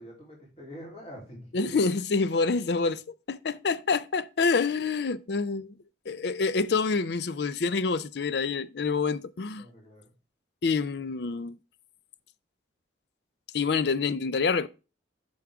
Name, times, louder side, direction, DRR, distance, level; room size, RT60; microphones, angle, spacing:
voice 1, 0.0-1.9 9.6-10.1, right 1 dB, 35° left, 3.2 m, -43 dB
voice 2, 1.5-5.7 6.1-9.6 10.6-11.6 13.5-14.7, left 4 dB, 65° left, 0.5 m, -27 dB
8.5 x 6.1 x 3.5 m
head